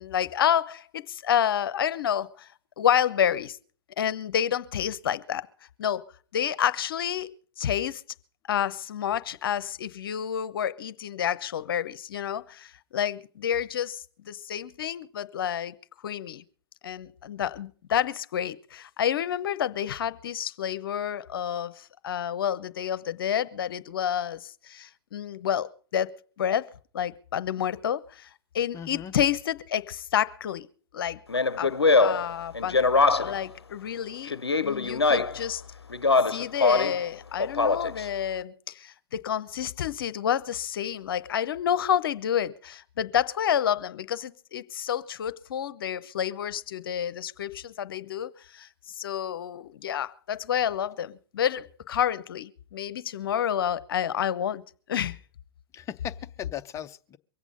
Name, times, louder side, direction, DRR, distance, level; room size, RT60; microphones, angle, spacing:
voice 1, 0.0-2.5 2.8-3.6 4.0-5.5 5.8-6.0 6.3-7.3 7.6-8.0 8.5-15.8 16.0-16.4 16.8-26.1 26.4-28.3 28.5-30.7 30.9-31.2 31.6-34.4 34.6-35.6 36.3-54.6 54.9-55.2, left 9 dB, 65° left, 0.8 m, -29 dB
voice 2, 28.7-29.1 55.7-57.2, left 9 dB, 20° left, 0.7 m, -38 dB
Speech, 31.3-33.5 34.3-35.5 35.9-37.0 37.4-38.0, left 3 dB, 90° left, 0.6 m, -23 dB
23.5 x 8.3 x 5.3 m
figure-of-eight pair, 105°, 13 cm